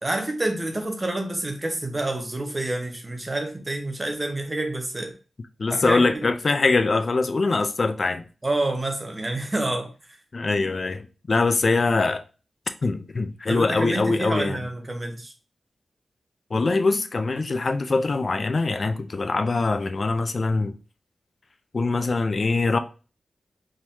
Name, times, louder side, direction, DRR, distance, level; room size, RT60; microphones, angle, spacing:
voice 1, 0.0-5.1 5.7-6.2 8.4-9.9 13.5-15.3, right 2 dB, 25° right, 1.0 m, -28 dB
voice 2, 5.6-8.2 10.3-12.2 12.8-14.7 16.5-20.8 21.7-22.8, left 3 dB, 45° left, 0.4 m, -23 dB
4.6 x 3.7 x 2.7 m
wide cardioid pair, 110°, 0 cm